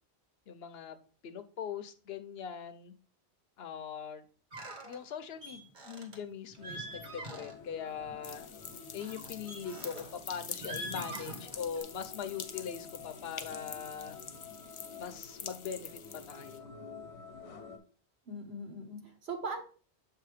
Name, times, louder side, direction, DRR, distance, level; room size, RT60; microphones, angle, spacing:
voice 1, 0.5-1.0 1.2-3.0 3.6-4.2 4.8-8.5 8.9-14.2 15.0-16.7, left 7 dB, 70° left, 10 dB, 0.9 m, -41 dB
sound 1, 4.5-5.0 5.4-6.2 6.5-7.7 8.0-8.3 9.0-10.1 10.5-11.8, right 1 dB, 45° right, 1.3 m, -44 dB
sound 2, 6.6-17.8, left 5 dB, 90° left, 1.1 m, -50 dB
sound 3, 8.2-16.6, left 6 dB, 45° left, 0.4 m, -46 dB
voice 2, 18.3-19.6, right 2 dB, 70° right, 4 dB, 1.5 m, -40 dB
7.2 x 2.8 x 4.8 m, 0.40 s
omnidirectional pair, 1.1 m